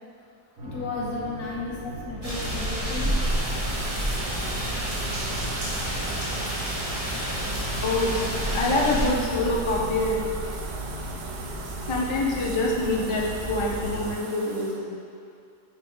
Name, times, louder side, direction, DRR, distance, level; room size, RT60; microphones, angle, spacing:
voice 1, 0.6-1.8 2.0-3.1, left 3 dB, 75° left, -4 dB, 1.6 m, -33 dB
sound 1, 0.6-14.1, right 1 dB, 55° right, 2.2 m, -36 dB
sound 2, 2.2-9.1, equal, 20° right, 1.5 m, -29 dB
sound 3, 3.0-14.8, right 4 dB, 85° right, 1.3 m, -39 dB
voice 2, 7.8-8.1 8.5-10.3 11.9-14.9, left 2 dB, 35° left, -2 dB, 0.5 m, -25 dB
8.4 x 3.3 x 4.6 m, 2.2 s
omnidirectional pair, 1.7 m